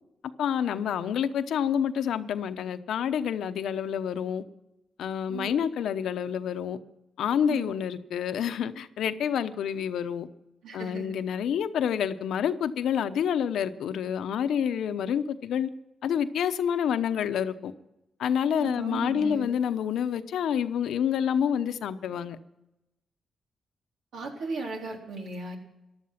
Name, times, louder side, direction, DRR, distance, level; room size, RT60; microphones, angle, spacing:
voice 1, 0.4-4.4 5.0-6.8 7.2-10.3 10.7-15.7 16.0-17.7 18.2-22.4, left 8 dB, 85° left, 0.8 m, -28 dB
voice 2, 10.6-11.1 18.6-19.5 24.1-25.6, right 3 dB, 80° right, 3.7 m, -36 dB
15.5 x 11.5 x 5.8 m
cardioid pair, 85°, 0 cm